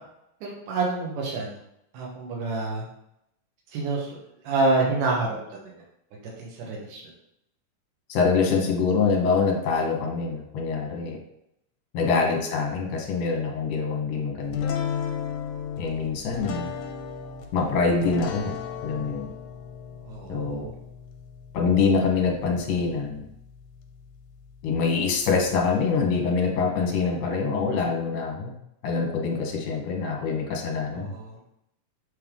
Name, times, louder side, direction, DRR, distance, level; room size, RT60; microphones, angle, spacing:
voice 1, 0.4-1.5 1.9-2.8 3.7-4.2 4.4-5.7 6.4-7.0 12.0-12.3 20.0-20.7 30.9-31.4, right 3 dB, 90° right, -2 dB, 2.7 m, -28 dB
voice 2, 8.1-11.2 11.9-14.7 15.8-16.7 17.5-18.5 18.8-19.3 20.3-20.7 21.5-23.3 24.6-28.5 28.8-31.1, left 4 dB, 60° left, 1 dB, 2.1 m, -25 dB
sound 1, 14.5-26.0, left 7 dB, 80° left, 2.0 m, -36 dB
7.6 x 3.5 x 3.6 m, 0.80 s
omnidirectional pair, 3.5 m